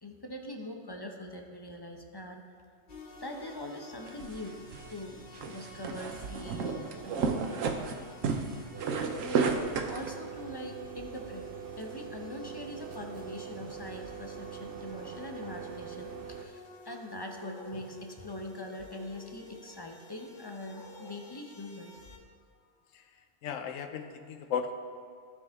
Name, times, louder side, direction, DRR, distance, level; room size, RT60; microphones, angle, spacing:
voice 1, 0.0-2.4 3.2-4.6 4.9-5.2 5.5-7.5 9.0-9.6 9.9-11.5 11.8-22.0, left 1 dB, 25° left, 3 dB, 0.6 m, -42 dB
sound 1, 2.9-22.2, left 3 dB, 45° left, 1.0 m, -52 dB
sound 2, 4.1-10.1, right 5 dB, 85° right, 1.1 m, -33 dB
sound 3, 8.7-16.4, right 7 dB, 55° right, 0.7 m, -43 dB
voice 2, 23.4-24.7, left 7 dB, 80° left, 7 dB, 1.1 m, -35 dB
16.0 x 5.4 x 3.5 m, 2.1 s
omnidirectional pair, 1.3 m